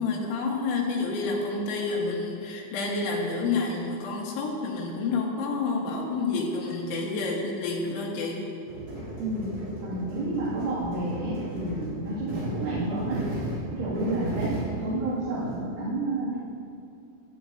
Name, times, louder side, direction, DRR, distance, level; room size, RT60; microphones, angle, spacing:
voice 1, 0.0-8.4, left 3 dB, 80° left, -2 dB, 4.0 m, -29 dB
sound 1, 8.7-15.5, right 1 dB, 35° right, 4.3 m, -35 dB
voice 2, 9.2-13.2 13.7-16.4, right 2 dB, 90° right, -12 dB, 5.2 m, -30 dB
15.5 x 13.5 x 2.9 m, 2.5 s
omnidirectional pair, 5.4 m